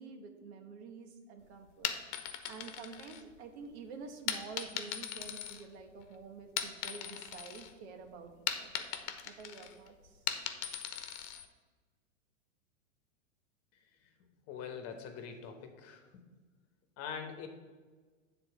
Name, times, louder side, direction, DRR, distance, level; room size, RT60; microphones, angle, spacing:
voice 1, 0.0-8.9 9.2-10.2, right 5 dB, 60° right, 5 dB, 1.3 m, -49 dB
sound 1, 1.7-3.6 4.3-6.1 6.4-7.7 8.0-11.5, left 9 dB, 65° left, 1.0 m, -39 dB
voice 2, 14.5-16.2 17.0-17.5, left 7 dB, 40° left, 6 dB, 1.3 m, -43 dB
7.8 x 4.2 x 6.9 m, 1.4 s
hypercardioid pair, 120°, 37 cm